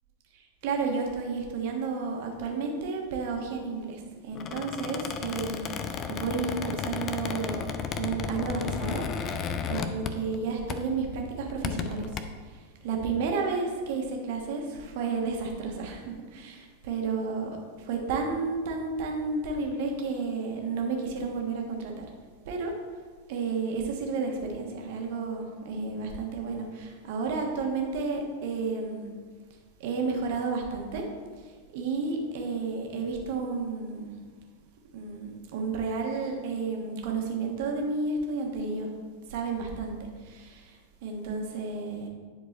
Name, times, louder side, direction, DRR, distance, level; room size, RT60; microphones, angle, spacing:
voice 1, 0.3-5.7 6.1-7.7 8.0-12.1 12.8-22.1 22.5-22.7 23.3-29.2 29.8-31.0 31.7-34.1 34.9-38.9 39.3-39.9 40.2-42.1, right 4 dB, 50° right, 1 dB, 1.4 m, -32 dB
Squeak, 4.3-10.4 10.7-11.0 11.5-12.2, left 6 dB, 30° left, 0.6 m, -33 dB
10.0 x 4.7 x 4.0 m, 1.5 s
figure-of-eight pair, 90°, 0 cm